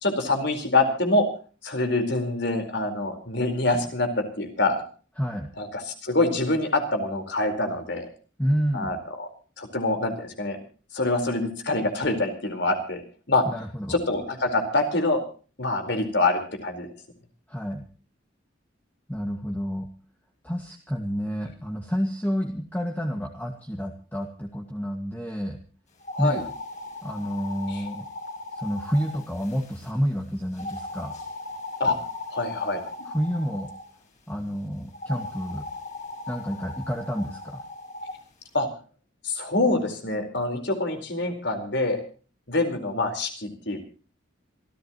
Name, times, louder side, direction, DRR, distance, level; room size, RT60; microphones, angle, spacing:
voice 1, 0.0-1.3 1.6-4.8 5.6-8.1 8.7-9.3 9.6-10.6 10.9-13.0 13.3-13.4 13.9-15.2 15.6-16.9 26.1-26.4 31.8-32.0 32.3-32.8 38.5-38.7 39.2-42.0 42.5-43.8, left 2 dB, 60° left, 6 dB, 4.4 m, -25 dB
voice 2, 5.2-5.5 8.4-9.0 13.5-14.0 17.5-17.8 19.1-19.9 20.4-25.6 26.2-26.5 27.0-28.1 28.5-31.2 33.1-33.7 34.3-35.7 36.3-37.6, equal, 10° left, 2 dB, 1.8 m, -29 dB
sound 1, 26.0-29.9 30.6-33.9 34.9-38.2, left 3 dB, 40° left, 7.0 m, -38 dB
27.0 x 14.0 x 3.0 m, 0.38 s
head